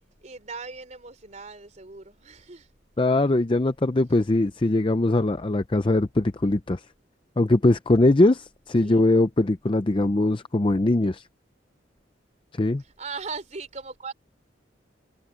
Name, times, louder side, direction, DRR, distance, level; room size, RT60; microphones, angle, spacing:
voice 1, 0.2-2.7 8.8-9.0 12.8-14.1, right 4 dB, 40° right, 3.5 m, -39 dB
voice 2, 3.0-6.8 7.4-11.2 12.6-12.8, left 2 dB, 30° left, 0.5 m, -21 dB
head